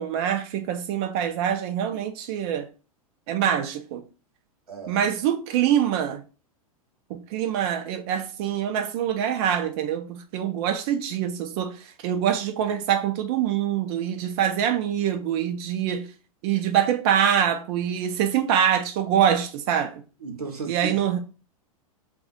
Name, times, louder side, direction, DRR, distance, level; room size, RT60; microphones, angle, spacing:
voice 1, 0.0-2.7 3.3-4.0 4.9-6.2 7.1-11.8 12.0-16.1 16.4-20.0 20.7-21.2, right 9 dB, 45° right, 0.4 m, -24 dB
voice 2, 4.7-5.0 20.2-21.0, right 5 dB, 85° right, 0.7 m, -34 dB
2.4 x 2.2 x 3.7 m
figure-of-eight pair, 100°, 19 cm